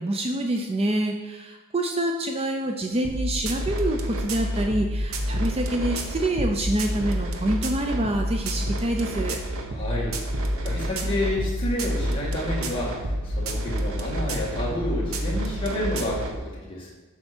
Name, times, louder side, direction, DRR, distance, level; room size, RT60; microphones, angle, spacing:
voice 1, 0.0-9.4, right 1 dB, 30° right, 3 dB, 0.5 m, -26 dB
sound 1, 3.0-16.4, equal, 70° right, 0.9 m, -28 dB
voice 2, 9.7-10.2 10.6-16.9, left 1 dB, 25° left, -5 dB, 2.1 m, -30 dB
7.8 x 6.1 x 4.4 m, 1.3 s
head